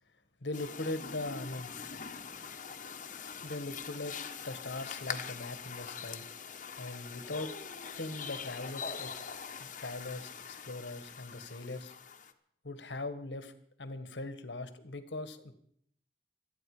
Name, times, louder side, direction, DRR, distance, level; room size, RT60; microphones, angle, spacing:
voice 1, 0.4-1.7 3.4-4.1 4.4-6.2 6.7-7.5 8.0-9.1 9.6-11.9 12.6-13.5 13.8-15.5, left 2 dB, 90° left, 10 dB, 1.6 m, -40 dB
sound 1, 0.5-12.3, left 6 dB, 45° left, 1.2 m, -43 dB
27.0 x 9.4 x 4.9 m, 0.67 s
head